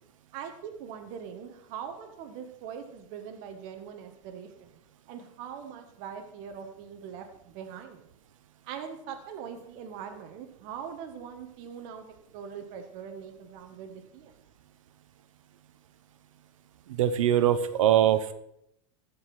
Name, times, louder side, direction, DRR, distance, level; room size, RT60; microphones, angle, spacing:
voice 1, 0.3-4.8 5.1-8.1 8.6-12.1 12.3-14.3, right 7 dB, 60° right, 4 dB, 1.6 m, -42 dB
voice 2, 16.9-18.3, right 11 dB, 80° right, 11 dB, 1.0 m, -22 dB
14.5 x 5.5 x 6.1 m, 0.77 s
hypercardioid pair, 105°, 17 cm